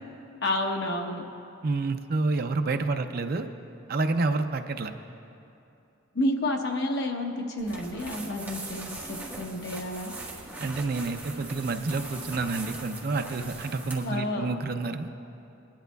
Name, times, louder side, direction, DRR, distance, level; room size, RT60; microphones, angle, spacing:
voice 1, 0.4-1.2 6.1-10.1 14.0-14.5, left 1 dB, 55° left, 2 dB, 0.9 m, -30 dB
voice 2, 1.6-3.5 3.9-4.9 10.6-15.1, right 3 dB, 50° right, 7 dB, 0.5 m, -29 dB
sound 1, 7.6-14.2, right 2 dB, 10° right, 1.2 m, -41 dB
23.0 x 10.5 x 2.3 m, 2.7 s
head